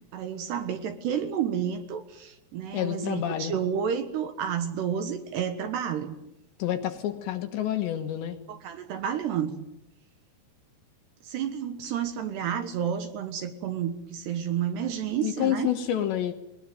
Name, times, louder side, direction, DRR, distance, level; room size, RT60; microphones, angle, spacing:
voice 1, 0.1-6.2 8.5-9.7 11.2-15.7, right 8 dB, 65° right, 8 dB, 3.0 m, -30 dB
voice 2, 2.7-3.5 6.6-8.4 15.2-16.3, left 11 dB, 70° left, 7 dB, 3.2 m, -28 dB
22.0 x 20.5 x 9.4 m, 0.86 s
omnidirectional pair, 6.0 m